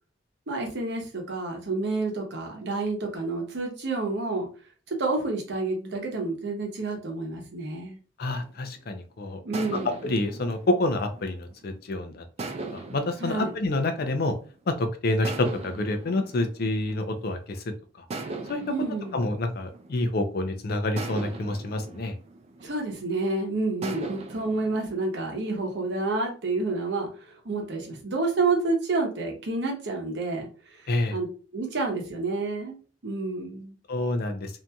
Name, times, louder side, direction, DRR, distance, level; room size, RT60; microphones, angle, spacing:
voice 1, 0.5-4.5 4.9-8.0 9.4-9.9 13.2-13.5 18.7-19.2 22.6-30.5 30.8-31.3 31.5-32.8 33.0-33.7, right 3 dB, 70° right, 1 dB, 0.8 m, -29 dB
voice 2, 8.2-9.4 9.7-12.2 12.7-14.3 14.7-17.6 18.5-18.6 19.1-22.1 30.9-31.2 33.9-34.6, left 2 dB, 55° left, 7 dB, 0.5 m, -28 dB
sound 1, 8.3-8.9 9.5-11.8 12.4-14.6 15.2-17.5 18.1-20.4 21.0-23.2 23.8-26.1, right 3 dB, 35° right, 0.3 m, -40 dB
2.8 x 2.6 x 2.2 m, 0.37 s
head